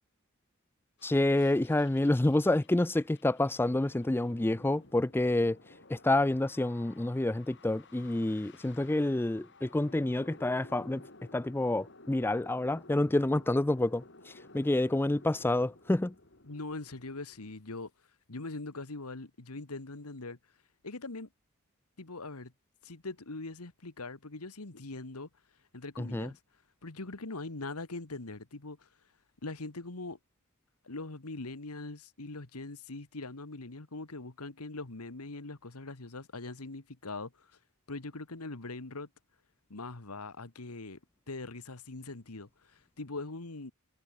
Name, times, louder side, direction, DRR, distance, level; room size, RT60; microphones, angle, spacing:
sound 1, 1.0-17.5, left 2 dB, 55° left, 4.1 m, -55 dB
voice 1, 1.0-5.6 5.9-11.0 11.3-16.1 26.0-26.3, left 1 dB, 10° left, 0.3 m, -28 dB
voice 2, 16.4-17.9 18.3-20.4 20.8-21.3 22.0-22.5 22.8-25.3 25.7-26.4 26.8-28.9 29.4-30.2 30.8-37.5 37.9-39.1 39.7-41.0 41.3-43.7, left 3 dB, 85° left, 1.7 m, -42 dB
head